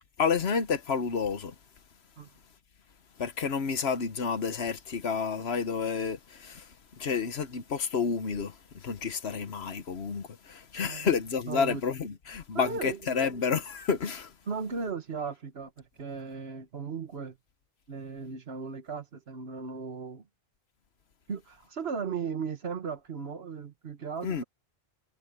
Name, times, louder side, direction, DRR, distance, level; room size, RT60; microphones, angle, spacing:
voice 1, 0.2-1.5 3.2-6.6 7.0-8.5 8.8-14.3 24.2-24.4, left 6 dB, 80° left, 1.4 m, -30 dB
voice 2, 11.5-11.8 12.5-13.0 14.5-17.4 17.9-20.2 21.3-24.4, right 5 dB, 75° right, 1.6 m, -36 dB
omnidirectional pair, 1.1 m